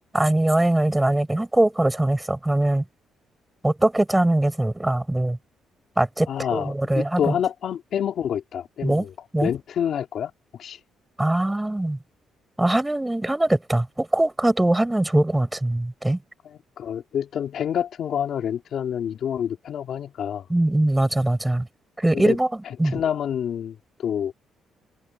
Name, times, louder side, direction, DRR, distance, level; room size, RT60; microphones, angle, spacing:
voice 1, 0.1-2.8 3.6-5.4 6.0-7.3 8.8-9.1 9.3-9.5 11.2-12.0 12.6-16.2 20.5-21.7 22.0-23.0, right 1 dB, 10° right, 6.0 m, -22 dB
voice 2, 6.3-9.1 9.4-10.3 10.6-10.8 16.4-20.4 22.1-22.4 22.7-24.3, left 9 dB, 65° left, 2.8 m, -28 dB
cardioid pair, 90°, 0 cm